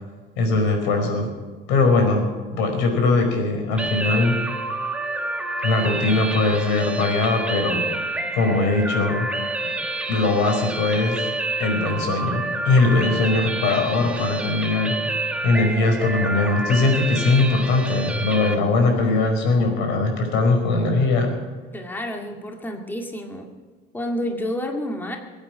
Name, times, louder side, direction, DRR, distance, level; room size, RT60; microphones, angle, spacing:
voice 1, 0.4-1.3 1.7-4.4 5.6-7.8 8.3-9.3 10.1-11.3 11.6-14.9 15.4-21.3, left 3 dB, 75° left, 3 dB, 4.9 m, -20 dB
sound 1, 3.8-18.6, right 2 dB, 5° right, 1.3 m, -28 dB
voice 2, 21.7-23.5 23.9-25.2, left 1 dB, 10° left, 2 dB, 2.0 m, -29 dB
22.5 x 9.0 x 6.2 m, 1.4 s
cardioid pair, 135°, 19 cm